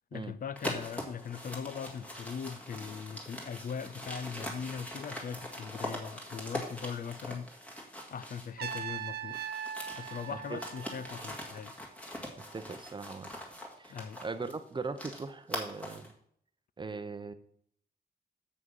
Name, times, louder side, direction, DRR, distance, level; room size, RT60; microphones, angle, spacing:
voice 1, 0.1-7.5 8.1-9.4 10.0-11.8 13.9-14.2, left 7 dB, 60° left, 0.5 m, -40 dB
sound 1, 0.6-9.0 9.3-16.1, equal, 10° left, 2.0 m, -42 dB
Trumpet, 8.6-11.6, right 9 dB, 75° right, 0.5 m, -40 dB
voice 2, 10.3-10.6 12.4-13.3 13.8-16.1 16.8-17.3, right 4 dB, 30° right, 0.6 m, -40 dB
7.6 x 6.2 x 5.4 m
wide cardioid pair, 145°, 17 cm